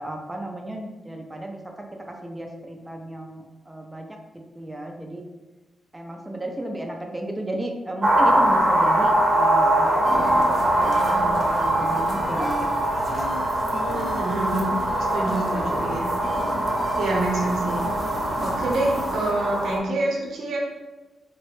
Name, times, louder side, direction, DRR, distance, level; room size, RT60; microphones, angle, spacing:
voice 1, 0.0-4.2 4.5-5.2 5.9-12.7 13.1-13.3, right 1 dB, 15° right, 2 dB, 0.5 m, -34 dB
sound 1, 8.0-19.8, right 1 dB, 35° right, 0.8 m, -22 dB
sound 2, 10.0-19.3, left 1 dB, 35° left, 0.6 m, -35 dB
voice 2, 13.8-14.7 15.1-16.1 17.0-17.9 18.4-20.6, right 2 dB, 75° right, -2 dB, 0.8 m, -27 dB
3.7 x 2.1 x 3.1 m, 1.2 s
cardioid pair, 95°, 0 cm